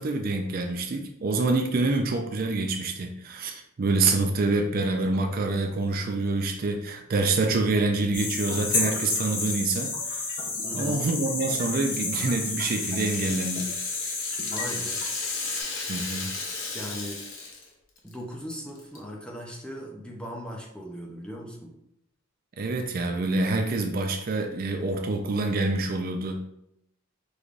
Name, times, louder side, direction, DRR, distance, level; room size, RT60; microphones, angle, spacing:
voice 1, 0.0-10.4 10.7-13.7 15.9-16.3 22.6-26.4, right 3 dB, 45° right, 4 dB, 0.4 m, -26 dB
sound 1, 8.1-15.6, left 3 dB, 40° left, 0.8 m, -30 dB
voice 2, 10.6-11.0 14.5-15.0 16.7-17.2 18.0-21.7, equal, 5° left, -1 dB, 0.6 m, -38 dB
Rattle (instrument), 11.9-17.7 18.0-18.1 18.5-19.0, left 3 dB, 80° left, 0.9 m, -37 dB
5.1 x 3.2 x 2.5 m, 0.79 s
head